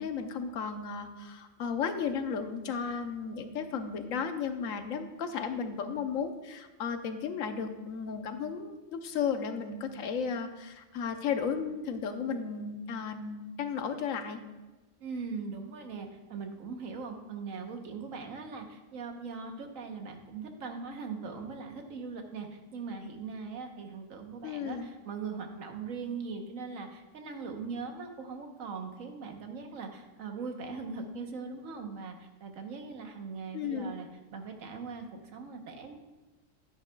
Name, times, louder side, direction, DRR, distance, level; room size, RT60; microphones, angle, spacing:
voice 1, 0.0-14.4 24.4-24.9 33.5-33.9, left 6 dB, 85° left, 7 dB, 1.2 m, -34 dB
voice 2, 15.0-36.0, right 4 dB, 80° right, 4 dB, 1.4 m, -40 dB
11.0 x 10.0 x 2.3 m, 1.2 s
omnidirectional pair, 1.4 m